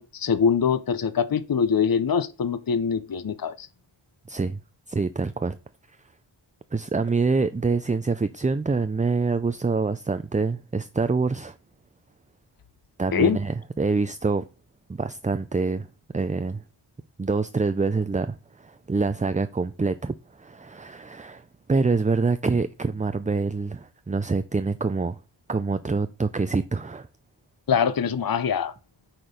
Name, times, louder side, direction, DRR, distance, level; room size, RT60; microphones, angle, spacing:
voice 1, 0.0-3.7 13.1-13.4 27.7-28.7, left 7 dB, 45° left, 0.6 m, -23 dB
voice 2, 4.3-4.6 4.9-5.6 6.7-11.6 13.0-14.4 15.0-15.9 16.1-16.6 17.2-21.4 21.7-25.2 25.5-27.1, right 4 dB, 20° right, 0.3 m, -26 dB
8.7 x 4.3 x 5.0 m
wide cardioid pair, 45°, 48 cm